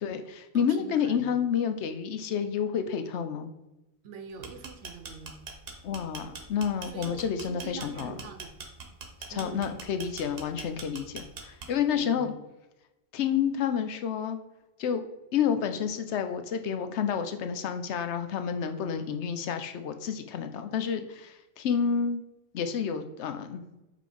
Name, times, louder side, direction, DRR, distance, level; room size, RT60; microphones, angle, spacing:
voice 1, 0.0-3.5 5.8-8.2 9.3-12.3 13.1-14.4 14.8-15.0 15.3-22.2 22.5-23.6, left 7 dB, 80° left, 8 dB, 0.9 m, -29 dB
voice 2, 0.5-1.3 4.0-5.4 6.9-8.6 9.3-9.7 11.9-12.3, right 4 dB, 85° right, 8 dB, 1.0 m, -43 dB
sound 1, 4.3-11.9, right 4 dB, 60° right, 1.0 m, -42 dB
5.0 x 3.8 x 5.0 m, 0.96 s
omnidirectional pair, 1.2 m